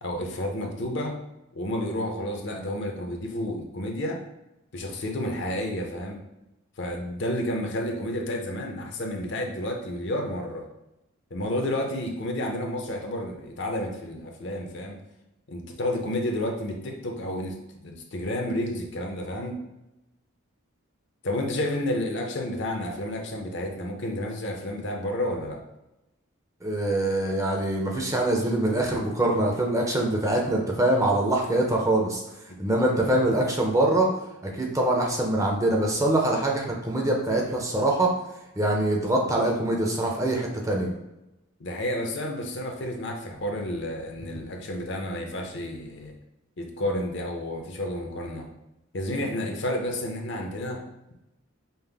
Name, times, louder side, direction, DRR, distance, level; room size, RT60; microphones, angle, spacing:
voice 1, 0.0-1.2 1.5-4.2 4.7-6.2 6.8-10.7 11.3-15.0 15.5-17.6 17.8-19.6 21.2-25.6 32.5-32.6 32.9-33.4 41.6-46.1 46.6-48.5 48.9-50.8, left 1 dB, 55° left, 2 dB, 0.6 m, -31 dB
voice 2, 26.6-32.2 32.6-34.1 34.6-38.1 38.6-40.9, right 1 dB, 15° right, 0 dB, 0.6 m, -24 dB
5.5 x 2.1 x 3.4 m, 0.92 s
head